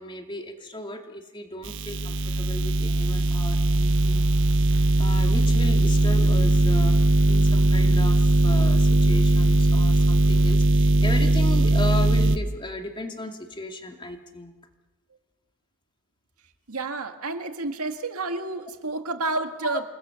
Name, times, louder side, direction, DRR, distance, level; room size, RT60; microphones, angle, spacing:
voice 1, 0.0-4.3 4.5-7.0 7.2-14.5 19.6-19.8, left 2 dB, 20° left, 4 dB, 2.4 m, -35 dB
sound 1, 1.6-12.4, right 2 dB, 60° right, 1.1 m, -20 dB
voice 2, 16.7-19.8, right 3 dB, 85° right, 6 dB, 1.9 m, -30 dB
28.5 x 20.5 x 7.0 m, 1.2 s
head